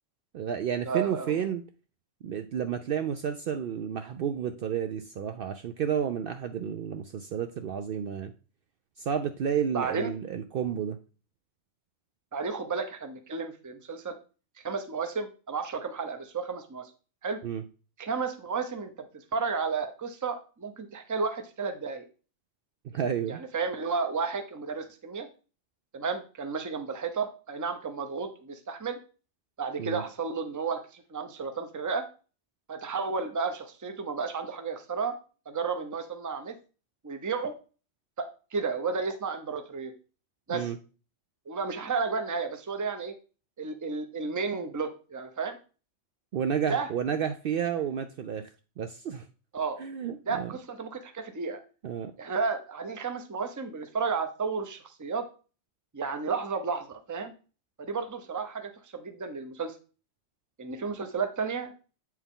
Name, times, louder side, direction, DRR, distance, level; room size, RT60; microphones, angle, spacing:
voice 1, 0.3-1.6 2.2-8.3 9.0-11.0 17.4-17.6 22.8-23.4 29.8-30.0 40.5-40.8 46.3-48.5 48.8-49.3 49.8-50.5 51.8-52.1, right 8 dB, 60° right, 7 dB, 0.6 m, -31 dB
voice 2, 0.8-1.3 9.7-10.1 12.3-14.2 14.6-16.9 17.2-17.4 18.0-22.1 23.3-25.3 25.9-29.0 29.6-32.1 32.7-35.2 35.5-36.5 37.0-37.5 38.2-39.9 40.5-40.7 41.5-43.1 43.6-45.6 46.7-46.9 49.5-49.8 50.3-51.6 52.2-55.3 55.9-57.3 57.8-59.7 60.6-61.7, right 5 dB, 20° right, 8 dB, 0.6 m, -32 dB
7.9 x 4.6 x 3.7 m, 0.35 s
omnidirectional pair, 1.2 m